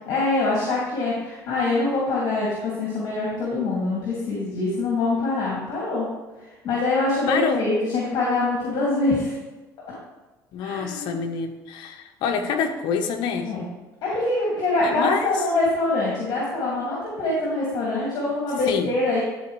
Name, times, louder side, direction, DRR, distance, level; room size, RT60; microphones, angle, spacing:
voice 1, 0.1-6.1 6.6-9.3 10.6-11.2 13.5-13.6 14.0-19.2, left 2 dB, 60° left, -5 dB, 2.1 m, -24 dB
voice 2, 7.3-7.6 10.5-13.5 14.8-15.4 18.7-18.9, left 6 dB, 75° left, 6 dB, 0.9 m, -26 dB
11.5 x 4.2 x 3.1 m, 1.1 s
supercardioid pair, 95°, 8 cm